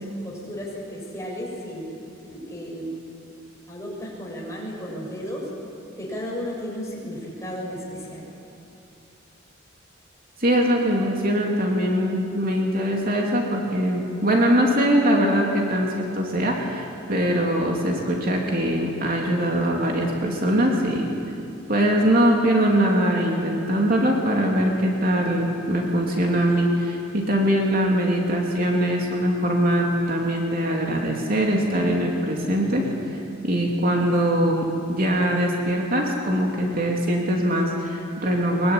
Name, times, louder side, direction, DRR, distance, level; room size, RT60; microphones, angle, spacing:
voice 1, 0.0-1.9 2.2-2.9 3.7-5.5 6.0-8.3, equal, 15° left, -3 dB, 6.9 m, -34 dB
voice 2, 10.4-21.1 21.7-38.7, equal, 45° right, -1 dB, 3.1 m, -22 dB
23.0 x 22.5 x 9.9 m, 2.7 s
head